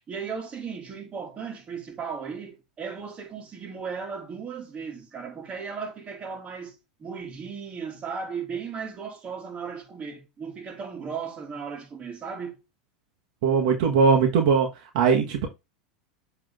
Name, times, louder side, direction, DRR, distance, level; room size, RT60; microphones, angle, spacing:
voice 1, 0.1-12.6, right 6 dB, 30° right, 2.5 m, -36 dB
voice 2, 13.4-14.7 14.9-15.5, right 5 dB, 65° right, 1.4 m, -20 dB
7.6 x 3.6 x 3.6 m
hypercardioid pair, 95°, 4 cm